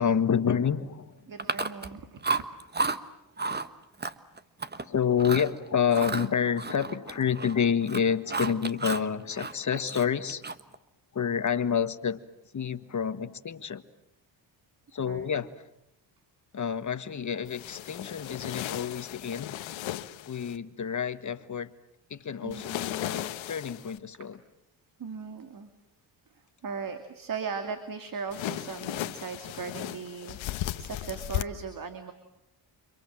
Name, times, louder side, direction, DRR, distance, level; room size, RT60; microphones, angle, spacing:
voice 1, 0.0-1.3 3.4-3.6 4.8-10.4 11.1-12.2 12.5-13.8 14.9-15.6 16.5-19.6 20.3-21.7 22.1-24.4, left 7 dB, 40° left, 11 dB, 1.6 m, -28 dB
voice 2, 1.3-2.4 15.0-15.3 22.4-22.7 25.0-25.7 26.3-32.1, right 5 dB, 45° right, 8 dB, 2.6 m, -38 dB
Chewing mastication, 1.4-1.9 2.2-3.0 3.4-3.7 4.0-4.8 5.2-5.5 5.9-7.6 7.8-9.1 9.4-10.7, right 4 dB, 20° right, 1.4 m, -32 dB
sound 1, 17.5-20.6 22.5-24.0 28.3-31.4, left 14 dB, 85° left, 1.2 m, -36 dB
29.5 x 26.5 x 7.7 m, 0.81 s
cardioid pair, 90°, 45 cm